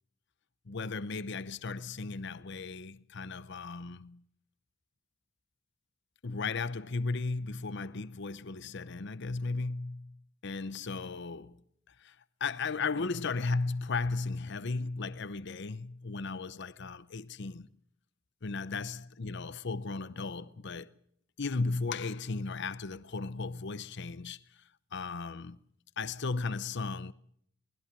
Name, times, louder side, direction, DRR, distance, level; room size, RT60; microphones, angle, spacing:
voice 1, 0.7-4.2 6.2-10.2 10.4-11.6 11.9-17.7 18.4-20.9 21.4-25.6 26.0-27.1, left 4 dB, 60° left, 0.8 m, -36 dB
24.5 x 20.0 x 6.1 m
head